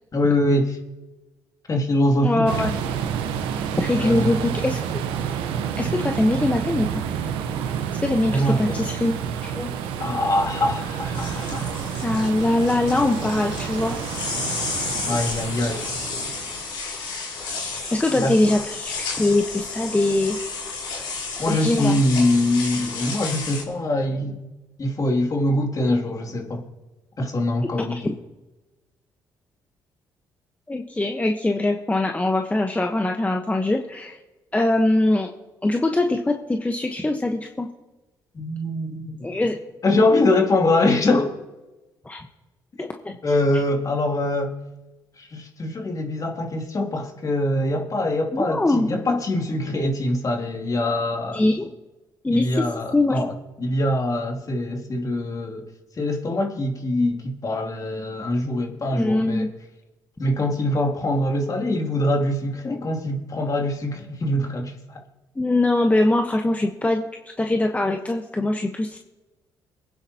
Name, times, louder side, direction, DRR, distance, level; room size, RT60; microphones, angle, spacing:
voice 1, 0.1-0.8 1.7-2.5 4.0-4.4 8.3-8.8 10.0-11.7 12.0-12.1 15.1-15.8 18.1-18.4 21.4-24.4 24.8-26.6 27.2-28.0 38.3-39.3 39.8-41.4 42.8-42.9 43.2-44.6 45.2-51.4 52.3-55.7 56.0-59.4 60.2-65.0, left 1 dB, 45° left, 2.7 m, -23 dB
voice 2, 2.2-2.7 3.8-4.8 5.8-6.9 8.0-9.7 12.0-14.0 17.9-20.4 21.5-22.0 28.0-28.1 30.7-34.2 34.5-35.3 35.6-37.7 39.2-39.6 42.0-42.2 42.8-43.1 48.5-49.0 51.3-51.7 52.2-52.6 52.9-53.1 58.9-59.5 65.4-67.0 67.4-69.0, left 2 dB, 15° left, 1.1 m, -22 dB
sound 1, 2.5-16.7, right 8 dB, 85° right, 0.9 m, -29 dB
sound 2, 11.1-23.6, left 4 dB, 85° left, 3.6 m, -32 dB
23.0 x 9.7 x 2.9 m
supercardioid pair, 60°, 9 cm